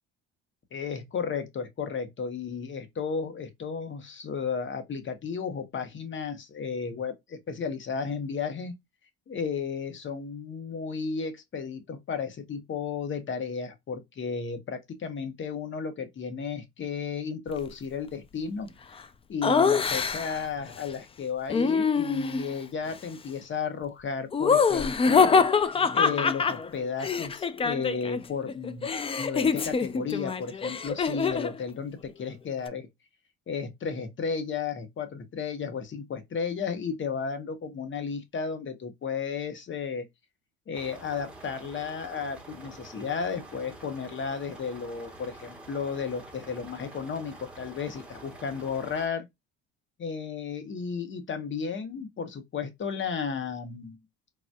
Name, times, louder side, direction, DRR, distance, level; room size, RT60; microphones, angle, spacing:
voice 1, 0.7-8.7 9.3-18.7 19.3-32.9 33.5-40.1 40.7-49.3 50.0-54.0, left 6 dB, 40° left, 1.0 m, -33 dB
Laughter, 19.4-20.5 21.5-22.5 24.3-28.2 28.5-31.6, left 5 dB, 20° left, 0.3 m, -25 dB
sound 1, 40.7-49.1, right 2 dB, 5° right, 1.4 m, -47 dB
3.9 x 2.7 x 2.2 m
cardioid pair, 95°, 30 cm